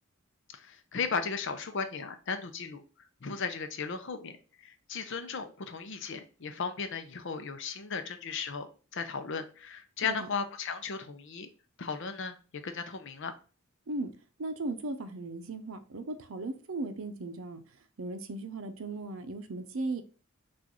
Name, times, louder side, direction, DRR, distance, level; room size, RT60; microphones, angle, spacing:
voice 1, 0.5-2.8 3.2-8.7 8.9-11.5 11.8-12.4 12.6-13.3, left 5 dB, 60° left, 0.6 m, -36 dB
voice 2, 14.4-17.6 18.0-20.0, right 2 dB, 70° right, 0.6 m, -37 dB
6.1 x 2.5 x 2.9 m
head